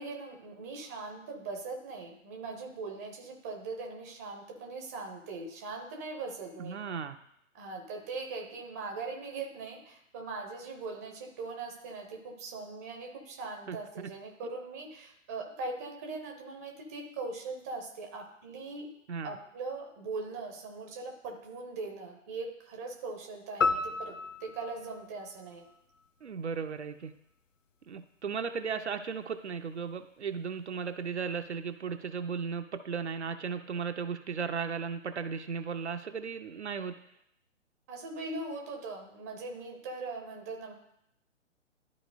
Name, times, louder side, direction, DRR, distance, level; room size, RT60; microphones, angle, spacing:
voice 1, 0.0-6.8 7.5-18.9 19.2-25.7 37.9-40.7, right 3 dB, 15° right, 2 dB, 0.6 m, -40 dB
voice 2, 6.6-7.2 13.7-13.8 19.1-19.4 26.2-27.1 27.9-37.0, right 6 dB, 60° right, 8 dB, 0.6 m, -36 dB
sound 1, 23.6-26.1, left 4 dB, 80° left, 0.5 m, -33 dB
12.5 x 4.3 x 2.5 m, 0.75 s
figure-of-eight pair, 130°, 38 cm